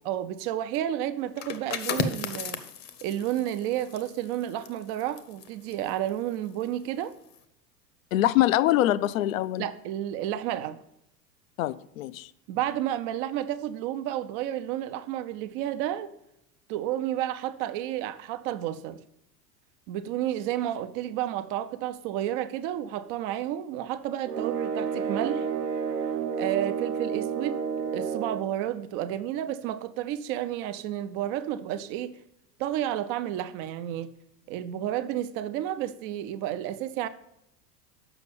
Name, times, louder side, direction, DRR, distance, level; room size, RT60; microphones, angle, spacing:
voice 1, 0.0-2.6 3.0-7.1 9.6-10.8 12.5-16.1 16.7-19.0 19.9-25.5 26.4-32.1 32.6-34.1 34.5-37.1, right 12 dB, 30° right, 0.4 m, -31 dB
sound 1, 1.3-6.8 7.1-7.4, left 6 dB, 35° left, 0.8 m, -36 dB
voice 2, 8.1-9.7 11.6-12.3, left 14 dB, 60° left, 0.5 m, -24 dB
sound 2, 24.2-28.5, right 6 dB, 80° right, 1.0 m, -30 dB
7.0 x 5.9 x 6.8 m
figure-of-eight pair, 80°, 48 cm